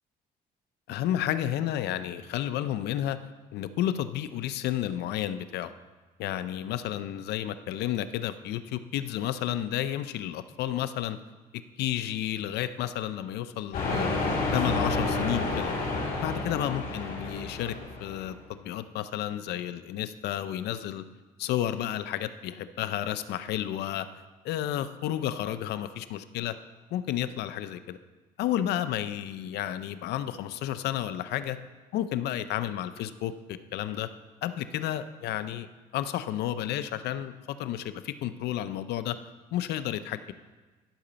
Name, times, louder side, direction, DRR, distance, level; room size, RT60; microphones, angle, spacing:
voice 1, 0.9-3.2 3.5-5.7 6.2-11.2 11.5-14.1 14.5-15.7 16.2-21.0 21.4-24.1 24.4-26.6 26.9-28.0 28.4-31.6 31.9-34.1 34.4-35.7 35.9-39.2 39.5-40.3, left 12 dB, 80° left, 12 dB, 0.6 m, -31 dB
sound 1, 13.7-18.3, left 2 dB, 60° left, 3.3 m, -30 dB
12.0 x 5.1 x 6.8 m, 1.3 s
cardioid pair, 110°, 17 cm